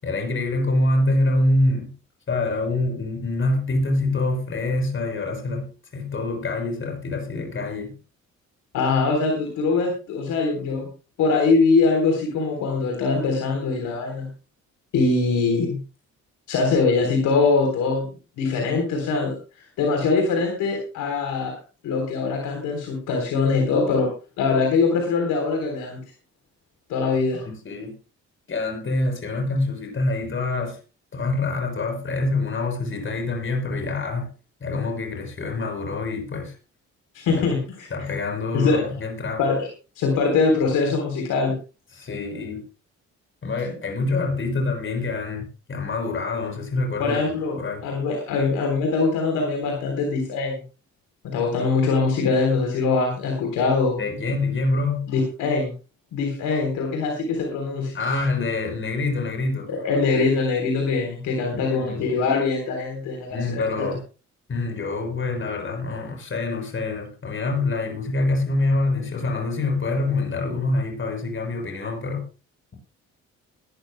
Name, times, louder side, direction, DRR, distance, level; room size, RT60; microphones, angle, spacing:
voice 1, 0.0-1.9 2.3-8.0 27.0-27.1 27.5-27.9 28.5-30.8 31.1-34.3 34.6-36.6 37.3-37.4 37.9-39.4 41.9-42.6 43.4-47.2 47.6-47.9 54.0-55.1 57.9-59.7 61.5-62.0 63.3-64.0 64.5-72.3, left 2 dB, 40° left, 3 dB, 6.2 m, -25 dB
voice 2, 8.7-10.9 11.2-14.3 14.9-15.8 16.5-18.1 18.4-19.3 19.8-21.5 21.8-24.1 24.4-26.0 26.9-27.5 37.1-38.1 38.5-38.8 39.4-39.7 40.0-41.5 47.0-47.6 47.8-50.6 51.2-54.0 55.1-55.7 56.1-57.9 59.7-63.9, left 4 dB, 85° left, 2 dB, 3.8 m, -22 dB
21.0 x 13.0 x 2.2 m, 0.33 s
cardioid pair, 90°, 30 cm